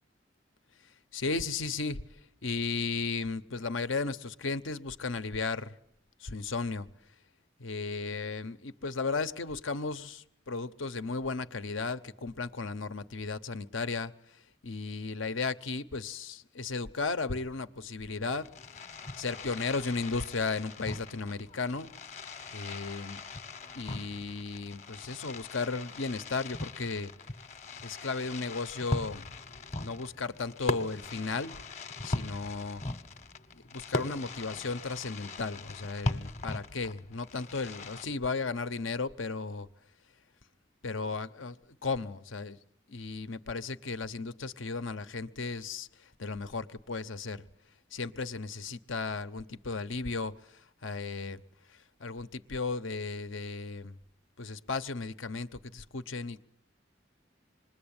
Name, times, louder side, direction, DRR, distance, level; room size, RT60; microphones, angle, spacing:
voice 1, 1.1-2.0 2.4-5.7 6.2-6.9 7.6-14.1 14.6-18.5 19.2-21.9 22.5-23.2 23.7-27.1 27.8-29.3 29.8-31.6 32.0-32.8 33.7-39.7 40.8-41.6 41.8-42.6 42.9-45.9 46.2-47.5 47.9-51.4 52.0-54.0 54.4-56.4, left 4 dB, 90° left, 12 dB, 1.0 m, -35 dB
Fireworks, 18.2-38.0, left 2 dB, 35° left, 1.0 m, -40 dB
26.5 x 20.5 x 8.9 m, 0.73 s
head